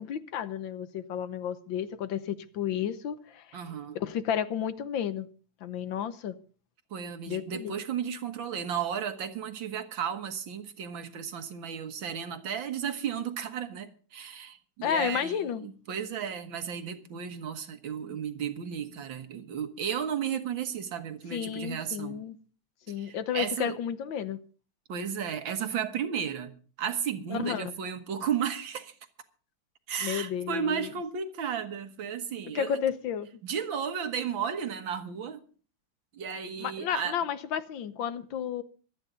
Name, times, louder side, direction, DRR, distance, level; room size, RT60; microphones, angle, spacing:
voice 1, 0.0-3.6 4.0-5.3 5.6-6.4 7.3-7.8 14.8-15.7 21.3-22.4 22.9-24.4 27.3-27.8 30.0-30.9 32.6-33.3 36.6-38.6, left 9 dB, 85° left, 1.7 m, -32 dB
voice 2, 3.5-4.0 6.9-22.2 22.9-23.8 24.9-26.5 26.8-28.9 29.9-32.8 33.4-35.4 36.1-37.2, right 8 dB, 85° right, 2.1 m, -34 dB
25.0 x 9.3 x 3.8 m
omnidirectional pair, 2.0 m